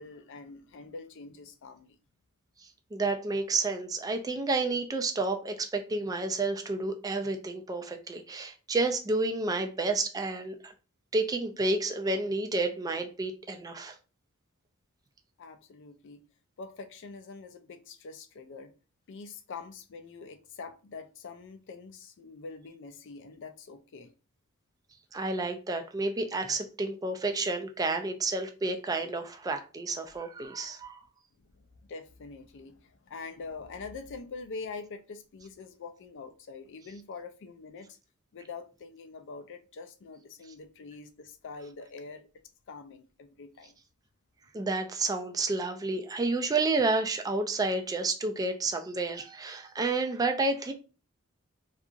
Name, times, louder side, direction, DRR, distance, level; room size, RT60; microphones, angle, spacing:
voice 1, 0.0-2.0 15.4-16.2 16.6-18.7 19.1-24.1 31.5-37.9 38.3-42.3 42.7-43.7, left 4 dB, 55° left, 0.4 m, -44 dB
voice 2, 2.6-10.7 11.1-14.0 25.1-31.0 44.5-50.7, right 3 dB, 15° right, 0.3 m, -30 dB
2.8 x 2.4 x 2.4 m
head